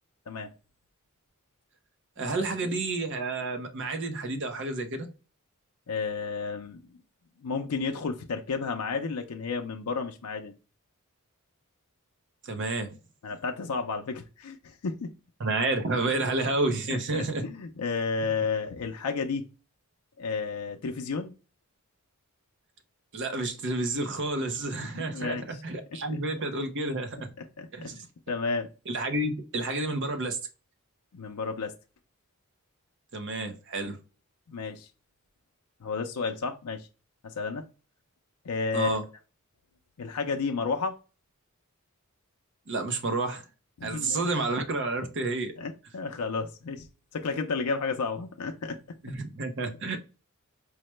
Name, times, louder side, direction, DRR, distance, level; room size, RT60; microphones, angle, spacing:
voice 1, 2.2-5.1 12.5-12.9 15.4-17.4 23.1-27.3 27.7-28.0 28.9-30.4 33.1-34.0 38.7-39.0 42.7-43.5 43.8-45.5 49.0-50.0, right 2 dB, 55° right, 0.7 m, -30 dB
voice 2, 5.9-6.8 7.4-10.5 13.2-15.1 16.9-19.5 20.2-21.4 24.8-25.6 26.1-26.2 27.4-28.7 31.1-31.7 34.5-34.9 35.8-36.9 37.2-37.6 38.4-39.0 40.0-41.0 43.8-44.2 45.6-46.9 47.1-48.8, left 4 dB, 85° left, 0.5 m, -32 dB
4.7 x 2.1 x 3.0 m
head